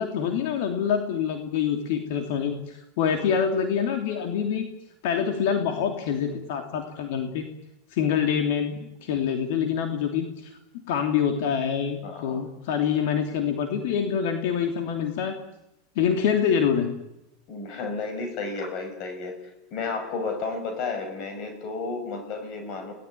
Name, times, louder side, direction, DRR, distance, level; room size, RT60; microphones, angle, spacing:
voice 1, 0.0-4.7 5.0-7.5 7.9-10.6 10.9-15.4 15.9-16.9, left 7 dB, 65° left, 5 dB, 3.0 m, -26 dB
voice 2, 12.0-12.4 17.5-19.3 19.7-22.9, left 4 dB, 40° left, 6 dB, 6.3 m, -32 dB
29.5 x 18.5 x 9.6 m, 0.89 s
supercardioid pair, 150°, 0 cm